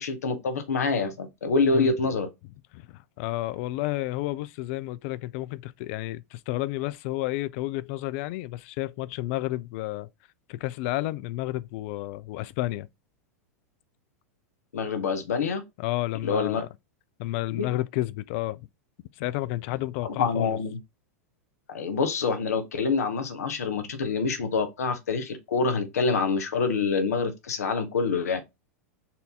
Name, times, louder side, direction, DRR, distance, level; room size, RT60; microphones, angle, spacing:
voice 1, 0.0-2.3 14.7-15.6 16.2-16.6 17.5-17.7 20.0-20.8 21.7-28.4, left 4 dB, 80° left, 0.9 m, -26 dB
voice 2, 2.7-10.1 10.5-12.9 15.8-16.7 17.2-18.7 19.2-20.6, left 17 dB, 55° left, 0.4 m, -31 dB
4.2 x 2.7 x 3.5 m
hypercardioid pair, 100°, 8 cm